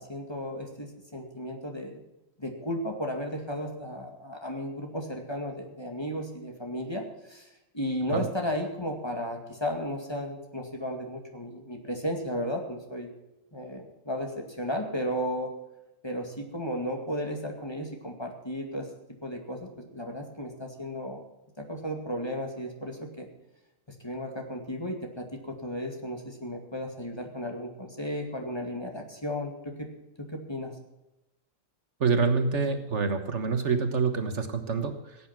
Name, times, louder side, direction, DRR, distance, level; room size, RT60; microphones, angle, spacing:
voice 1, 0.0-2.0 2.4-7.5 7.7-13.1 13.5-15.5 16.0-18.9 19.2-21.2 21.6-23.3 24.0-29.9 30.3-30.8, equal, 20° left, 2 dB, 2.3 m, -34 dB
voice 2, 32.0-35.2, right 4 dB, 60° right, 7 dB, 1.6 m, -26 dB
17.0 x 9.4 x 5.9 m, 0.95 s
omnidirectional pair, 1.3 m